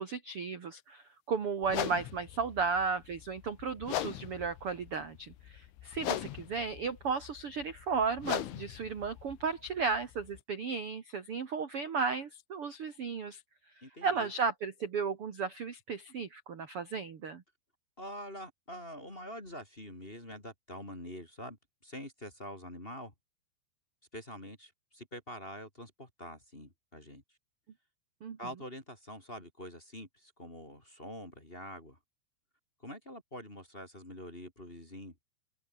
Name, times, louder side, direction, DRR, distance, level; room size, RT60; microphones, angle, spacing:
voice 1, 0.0-13.4 14.0-17.4 28.2-28.4, right 5 dB, 55° right, 1.6 m, -34 dB
sound 1, 1.6-10.4, left 13 dB, 85° left, 4.2 m, -40 dB
voice 2, 13.8-14.3 18.0-21.6 21.8-23.1 24.1-27.2 28.4-32.0 32.8-35.1, equal, 15° left, 3.0 m, -45 dB
open air
omnidirectional pair, 5.5 m